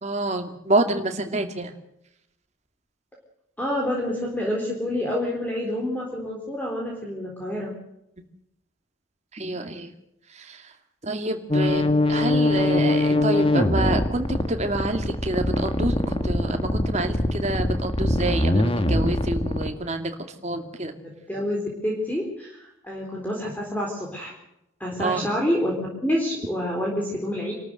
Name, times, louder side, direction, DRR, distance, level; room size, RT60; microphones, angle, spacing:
voice 1, 0.0-1.7 9.3-9.9 10.3-10.7 11.0-20.1 20.4-20.9 25.0-25.2, right 2 dB, 35° right, 6 dB, 2.3 m, -27 dB
voice 2, 3.6-7.7 21.0-24.3 24.8-25.7 26.0-27.5, left 1 dB, 10° left, -1 dB, 3.9 m, -28 dB
sound 1, 11.5-19.7, left 1 dB, 25° left, 1.5 m, -22 dB
27.0 x 13.5 x 7.9 m, 0.81 s
head